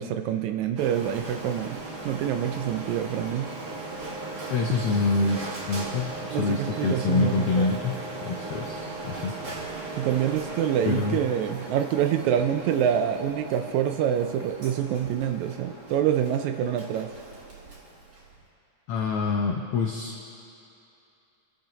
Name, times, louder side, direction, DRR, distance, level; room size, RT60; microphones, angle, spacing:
voice 1, 0.0-1.8 2.1-3.5 6.2-7.9 10.0-17.1, right 9 dB, 80° right, 7 dB, 1.8 m, -26 dB
Printer, 0.8-18.4, right 2 dB, 40° right, 1.6 m, -38 dB
voice 2, 4.5-9.4 10.8-11.2 18.9-20.2, left 4 dB, 80° left, 0 dB, 1.3 m, -26 dB
28.0 x 10.0 x 3.0 m, 2.7 s
omnidirectional pair, 3.6 m